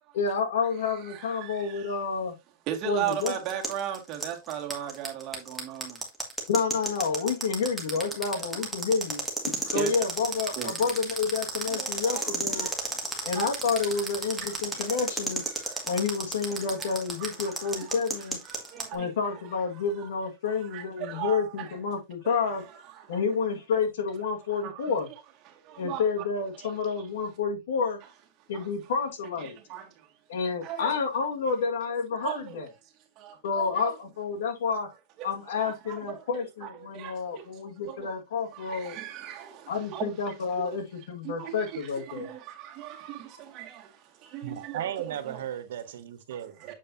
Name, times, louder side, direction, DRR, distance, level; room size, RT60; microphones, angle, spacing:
voice 1, 0.1-2.3 2.8-3.3 6.5-9.2 9.7-12.7 13.2-15.4 15.9-18.4 18.9-22.6 23.1-25.1 25.8-28.0 28.5-29.5 30.3-32.7 33.4-34.9 35.2-39.0 39.7-42.3, left 5 dB, 80° left, 1.8 m, -29 dB
voice 2, 1.0-2.0 2.7-6.0 8.3-8.7 9.7-9.9 10.6-10.8 11.7-13.5 14.4-15.0 15.5-15.9 16.5-18.0 18.5-19.4 19.7-20.1 20.5-21.8 22.2-23.2 24.6-24.9 25.5-26.0 26.5-26.7 28.5-28.7 29.4-30.1 30.6-30.9 32.2-32.6 33.2-33.9 35.2-35.3 35.5-37.5 37.8-38.1 38.5-40.8 41.2-45.4 46.6-46.7, right 11 dB, 40° right, 2.0 m, -38 dB
sound 1, 3.1-18.9, right 2 dB, ahead, 1.9 m, -32 dB
voice 3, 44.4-46.6, right 10 dB, 80° right, 1.1 m, -36 dB
7.4 x 5.3 x 2.7 m
supercardioid pair, 135°, 0 cm